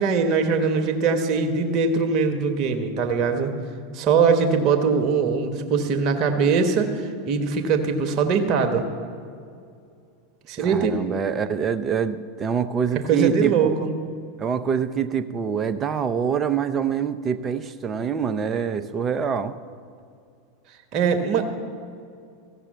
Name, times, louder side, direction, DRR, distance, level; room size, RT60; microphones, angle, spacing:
voice 1, 0.0-3.5 3.9-8.9 10.5-11.0 13.1-13.9 20.9-21.5, right 5 dB, 45° right, 6 dB, 1.2 m, -21 dB
voice 2, 10.6-13.7 14.4-19.5, right 7 dB, 25° right, 11 dB, 0.7 m, -25 dB
15.0 x 6.7 x 9.1 m, 2.3 s
figure-of-eight pair, 85°, 0 cm